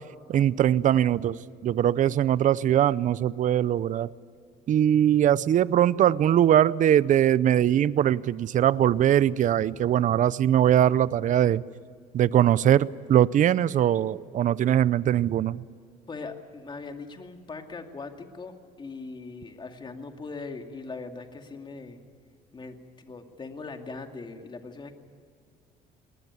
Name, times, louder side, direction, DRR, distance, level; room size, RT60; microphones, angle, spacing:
voice 1, 0.3-1.4 1.6-4.1 4.7-11.6 12.1-15.6, right 11 dB, 50° right, 19 dB, 0.6 m, -21 dB
voice 2, 16.1-22.0 22.5-24.9, left 3 dB, 30° left, 5 dB, 2.4 m, -40 dB
20.0 x 19.5 x 9.6 m, 2.1 s
cardioid pair, 110°, 17 cm